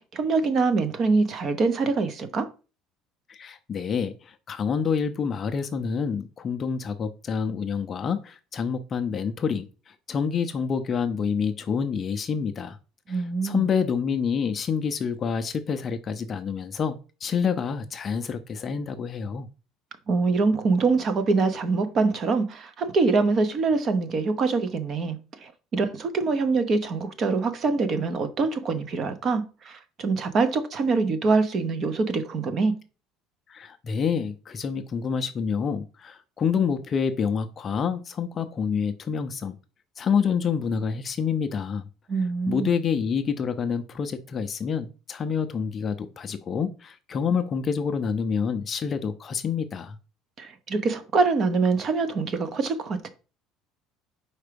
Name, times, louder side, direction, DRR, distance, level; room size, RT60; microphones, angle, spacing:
voice 1, 0.0-2.5 13.1-13.7 20.1-32.8 42.1-42.7 50.4-53.1, right 4 dB, 35° right, 0.8 m, -24 dB
voice 2, 3.3-12.8 13.1-17.0 17.2-19.5 33.5-39.6 40.0-41.9 42.5-50.0, left 6 dB, 30° left, 0.5 m, -27 dB
4.8 x 4.4 x 5.1 m
cardioid pair, 150°, 0 cm